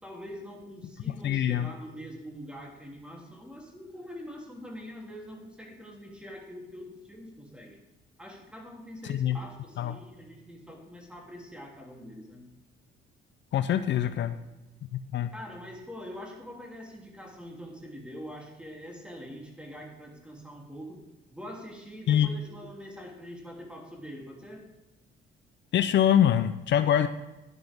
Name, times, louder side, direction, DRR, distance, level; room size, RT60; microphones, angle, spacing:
voice 1, 0.0-7.8 8.2-12.5 15.3-21.0 21.3-24.6, equal, 5° right, 0 dB, 3.1 m, -44 dB
voice 2, 1.2-1.7 9.1-9.4 9.8-9.9 13.5-14.4 15.1-15.3 22.1-22.3 25.7-27.1, left 10 dB, 65° left, 10 dB, 0.6 m, -24 dB
12.0 x 10.5 x 3.6 m, 1.0 s
cardioid pair, 90°, 20 cm